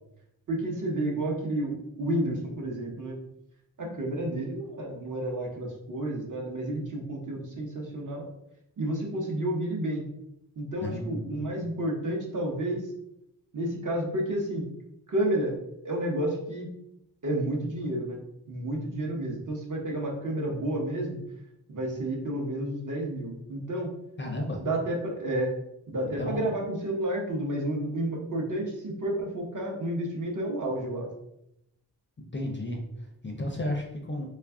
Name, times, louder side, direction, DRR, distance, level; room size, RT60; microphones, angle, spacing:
voice 1, 0.5-3.2 3.8-8.3 8.8-10.0 10.6-12.9 13.5-14.7 15.1-15.6 15.8-16.7 17.2-18.2 18.5-21.2 21.7-23.9 24.6-25.5 25.9-31.1, right 1 dB, 50° right, 0 dB, 0.9 m, -30 dB
voice 2, 10.8-11.6 24.2-24.6 26.2-26.5 32.2-34.3, left 1 dB, 30° left, 1 dB, 0.4 m, -33 dB
3.2 x 2.4 x 3.5 m, 0.81 s
wide cardioid pair, 145°, 41 cm